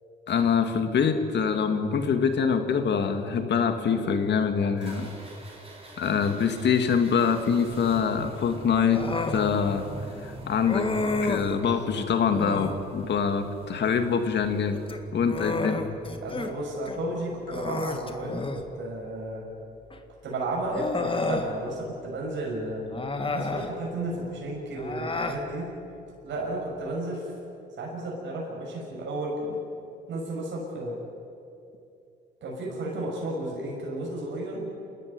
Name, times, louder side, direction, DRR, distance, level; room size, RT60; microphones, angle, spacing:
voice 1, 0.3-5.1 6.0-9.8 10.2-10.9 11.2-14.8 15.1-15.8, left 6 dB, 60° left, 7 dB, 2.3 m, -25 dB
sound 1, 4.8-15.0, right 2 dB, 30° right, 7.2 m, -45 dB
Human voice, 8.9-9.4 10.6-11.5 12.3-12.8 14.7-16.5 16.9-17.0 17.5-18.7 19.9-20.0 20.7-21.5 22.9-23.7 24.8-25.4, left 3 dB, 25° left, 2.0 m, -30 dB
voice 2, 16.2-19.5 20.2-22.8 23.3-25.7 26.2-27.3 27.8-29.6 30.1-31.0 32.4-34.6, right 1 dB, 70° right, -2 dB, 6.1 m, -33 dB
29.0 x 13.5 x 9.8 m, 2.8 s
cardioid pair, 90°, 20 cm